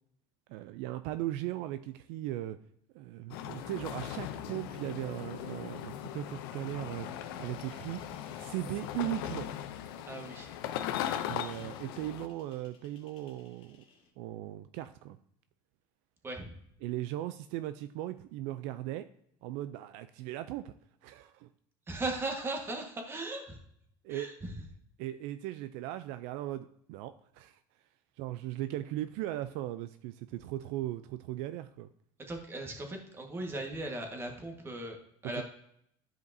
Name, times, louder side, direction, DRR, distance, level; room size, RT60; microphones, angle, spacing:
voice 1, 0.5-2.6 2.9-8.0 8.4-9.5 11.3-13.8 14.2-15.2 16.8-19.1 19.4-20.7 21.0-21.5 24.0-24.3 25.0-27.6 28.2-31.9 35.4-35.5, right 14 dB, 70° right, 11 dB, 0.4 m, -38 dB
sound 1, 3.3-12.3, left 11 dB, 90° left, 0.6 m, -39 dB
sound 2, 3.3-14.1, left 5 dB, 50° left, 1.7 m, -59 dB
voice 2, 10.1-10.5 16.2-16.5 21.9-23.6 24.1-24.5 32.3-35.0 35.2-35.4, right 2 dB, 20° right, 3 dB, 1.5 m, -38 dB
12.0 x 5.1 x 2.7 m, 0.71 s
cardioid pair, 130°, 12 cm